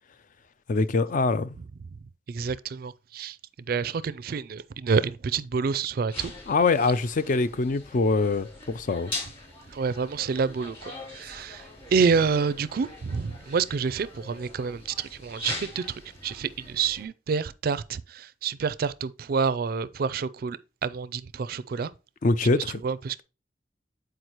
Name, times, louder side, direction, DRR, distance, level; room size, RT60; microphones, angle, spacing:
voice 1, 0.7-1.6 6.5-9.1 22.2-22.8, left 3 dB, 45° left, 0.4 m, -24 dB
voice 2, 2.3-3.4 3.7-6.3 9.7-11.6 11.9-21.9 22.6-23.2, right 5 dB, 55° right, 0.4 m, -28 dB
sound 1, 6.1-17.0, left 2 dB, 30° left, 2.9 m, -42 dB
8.0 x 4.7 x 2.9 m
head